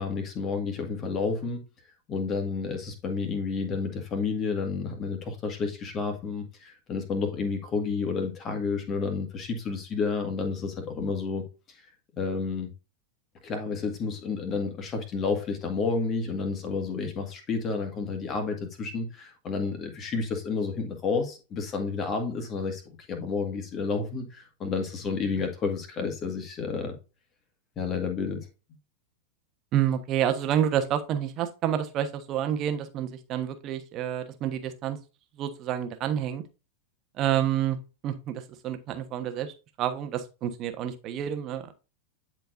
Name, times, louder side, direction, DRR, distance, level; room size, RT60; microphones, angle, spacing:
voice 1, 0.0-1.6 2.1-11.4 12.1-12.7 13.4-27.0 27.8-28.5, left 4 dB, 30° left, 1.9 m, -30 dB
voice 2, 29.7-35.0 35.4-36.4 37.2-37.8 38.0-41.7, right 10 dB, 35° right, 1.2 m, -29 dB
10.5 x 4.6 x 2.6 m
figure-of-eight pair, 90°, 0 cm